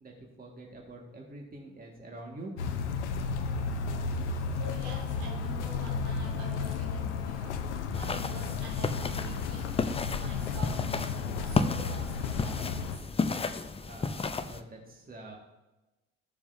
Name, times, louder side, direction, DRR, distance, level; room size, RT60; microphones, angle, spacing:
voice 1, 0.0-2.5 13.9-15.4, right 2 dB, 25° right, 0 dB, 1.7 m, -46 dB
sound 1, 2.6-13.0, left 5 dB, 80° left, 0.7 m, -33 dB
voice 2, 4.5-7.6 7.9-13.1, right 2 dB, 70° right, -4 dB, 3.1 m, -46 dB
sound 2, 7.9-14.6, left 4 dB, 15° left, 0.6 m, -33 dB
14.0 x 7.0 x 2.6 m, 1.0 s
figure-of-eight pair, 55°, 35 cm